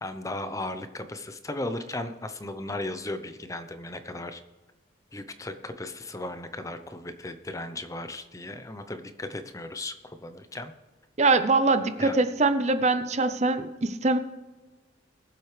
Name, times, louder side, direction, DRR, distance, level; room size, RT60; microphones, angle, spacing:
voice 1, 0.0-4.4 5.1-10.7 12.0-12.2, left 2 dB, 15° left, 9 dB, 0.7 m, -36 dB
voice 2, 11.2-14.2, right 3 dB, 35° right, 11 dB, 0.6 m, -23 dB
22.5 x 7.6 x 3.3 m, 1.2 s
head